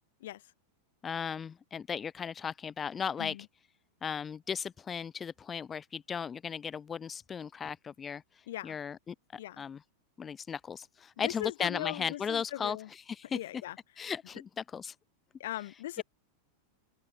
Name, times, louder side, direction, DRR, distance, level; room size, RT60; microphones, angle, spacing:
voice 1, 1.0-3.4 4.0-9.1 9.6-9.8 10.2-13.4 14.0-15.0, left 7 dB, 20° left, 0.3 m, -36 dB
voice 2, 11.2-12.9 13.2-13.8 15.4-16.0, left 14 dB, 55° left, 2.6 m, -39 dB
open air
figure-of-eight pair, 90°, 0 cm